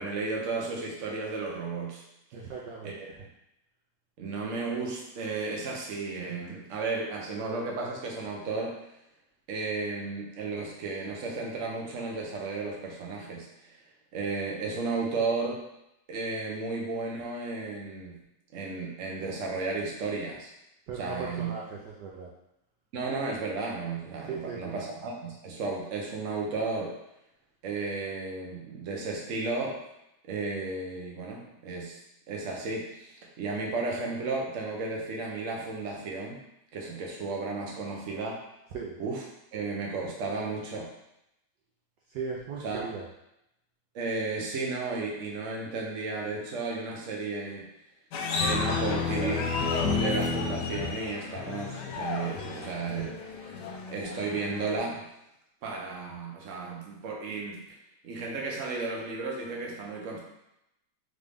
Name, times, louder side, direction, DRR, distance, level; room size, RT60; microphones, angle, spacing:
voice 1, 0.0-2.0 2.8-3.1 4.2-8.8 9.5-13.8 14.1-15.6 16.1-18.2 18.5-20.5 20.9-21.5 22.9-26.9 27.6-29.8 30.3-32.0 32.3-36.4 36.7-38.4 39.0-39.2 39.5-40.9 42.6-42.9 43.9-47.7 48.4-49.5 49.9-53.6 53.9-55.0 55.6-57.6 58.0-60.2, right 3 dB, 55° right, -1 dB, 0.9 m, -33 dB
voice 2, 2.3-2.9 20.9-22.3 24.3-24.8 38.7-39.0 42.1-43.1, right 5 dB, 70° right, -3 dB, 1.1 m, -38 dB
sound 1, 48.1-54.8, left 4 dB, 70° left, 1.0 m, -31 dB
3.8 x 3.6 x 3.4 m, 0.84 s
omnidirectional pair, 2.2 m